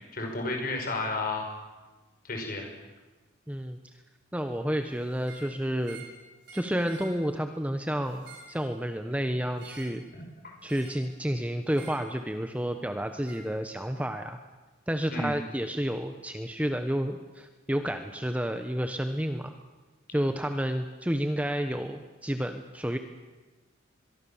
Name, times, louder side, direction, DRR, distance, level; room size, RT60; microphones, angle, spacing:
voice 1, 0.1-1.5 2.2-2.7 10.1-10.6 15.1-15.3, left 2 dB, 45° left, 2 dB, 5.7 m, -32 dB
voice 2, 3.5-3.8 4.3-6.0 6.5-10.0 10.6-14.4 14.9-19.5 20.1-23.0, equal, 5° right, 7 dB, 1.0 m, -30 dB
sound 1, 5.2-5.5 5.8-6.2 6.4-7.1 8.0-8.6 9.6-10.0 10.7-11.0 11.7-12.1 13.3-13.4, right 4 dB, 55° right, 6.7 m, -48 dB
24.0 x 22.5 x 7.2 m, 1.2 s
head